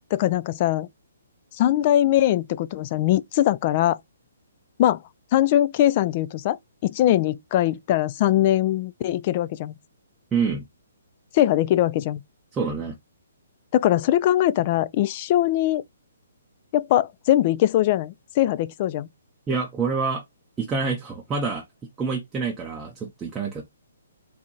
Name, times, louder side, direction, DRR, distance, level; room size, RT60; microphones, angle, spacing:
voice 1, 0.1-0.9 1.6-4.0 4.8-5.0 5.3-6.6 6.8-9.7 11.3-12.2 13.7-15.8 16.7-19.1, left 13 dB, 35° left, 0.3 m, -21 dB
voice 2, 10.3-10.6 12.5-12.9 19.5-20.2 20.6-21.6 22.0-23.6, right 4 dB, 15° right, 0.7 m, -27 dB
3.7 x 2.6 x 2.8 m
figure-of-eight pair, 130°, 0 cm